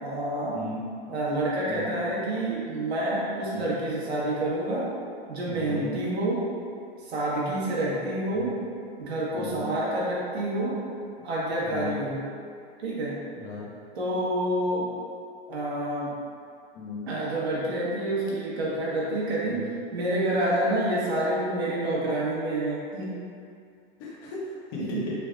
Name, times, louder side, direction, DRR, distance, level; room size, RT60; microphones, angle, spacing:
voice 1, 0.0-0.6 1.1-4.9 5.3-6.4 7.1-8.5 9.0-10.8 11.2-12.2 12.8-13.1 14.0-14.9 15.5-16.1 17.1-19.6 19.9-23.1 24.9-25.0, right 1 dB, 85° right, -6 dB, 1.1 m, -28 dB
voice 2, 5.5-5.9 8.3-8.6 9.3-9.7 11.6-11.9 13.3-13.7 16.7-17.1 19.4-19.8 24.0-25.1, left 3 dB, 40° left, -5 dB, 0.9 m, -37 dB
3.4 x 3.2 x 2.4 m, 2.4 s
hypercardioid pair, 120°, 31 cm